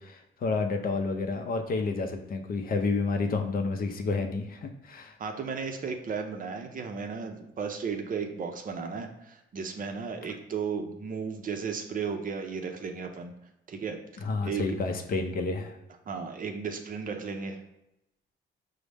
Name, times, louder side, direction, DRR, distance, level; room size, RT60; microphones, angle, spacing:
voice 1, 0.0-5.1 14.2-15.8, left 3 dB, 45° left, 5 dB, 0.5 m, -30 dB
voice 2, 5.2-13.3 13.7-14.0 14.4-14.8 16.1-17.6, right 5 dB, 45° right, 5 dB, 0.5 m, -34 dB
5.1 x 2.0 x 3.3 m, 0.87 s
cardioid pair, 90°, 20 cm